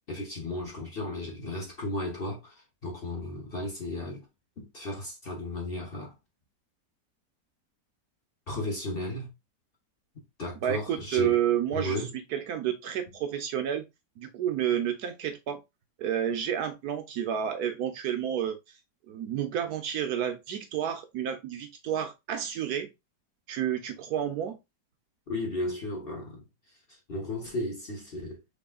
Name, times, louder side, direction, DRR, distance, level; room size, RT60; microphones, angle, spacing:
voice 1, 0.1-4.3 4.6-6.1 8.5-9.3 10.4-11.4 11.7-12.1 25.3-26.4 26.9-28.4, left 1 dB, 40° left, 1.0 m, -34 dB
voice 2, 10.6-12.0 12.3-13.8 14.2-15.6 16.0-18.6 19.1-22.9 23.5-24.6, right 9 dB, 70° right, 1.1 m, -30 dB
6.0 x 3.4 x 2.4 m
omnidirectional pair, 1.9 m